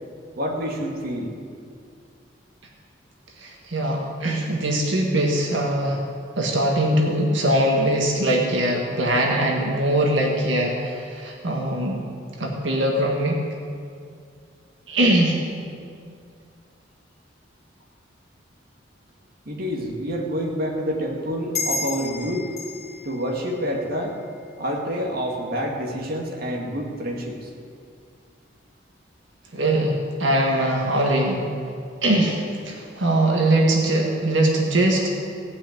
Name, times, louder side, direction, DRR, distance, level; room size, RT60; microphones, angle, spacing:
voice 1, 0.4-1.4 19.5-22.5 23.0-24.2 24.6-27.5, equal, 55° right, 0 dB, 2.0 m, -27 dB
voice 2, 3.4-6.0 6.4-12.0 12.4-13.4 14.9-15.5 29.5-31.4 32.0-35.1, right 1 dB, 80° right, 0 dB, 1.7 m, -21 dB
sound 1, 21.5-24.6, left 3 dB, 35° left, 1.7 m, -32 dB
17.5 x 5.9 x 9.2 m, 2.3 s
head